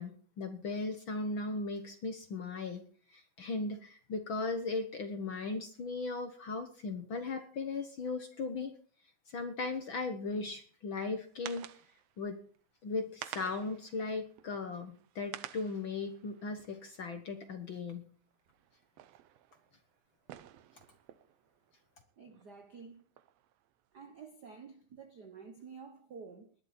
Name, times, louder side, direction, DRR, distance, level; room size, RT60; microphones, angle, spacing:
voice 1, 0.0-2.8 3.1-8.7 9.3-11.7 12.2-12.4 12.8-18.0, left 3 dB, 60° left, 1.4 m, -37 dB
sound 1, 11.3-12.2 12.6-12.7 13.0-17.8 18.3-22.5 22.9-24.0, right 12 dB, 70° right, 1.6 m, -51 dB
voice 2, 22.2-23.1 23.9-26.5, right 5 dB, 90° right, 0.9 m, -50 dB
20.0 x 11.5 x 4.3 m
omnidirectional pair, 3.7 m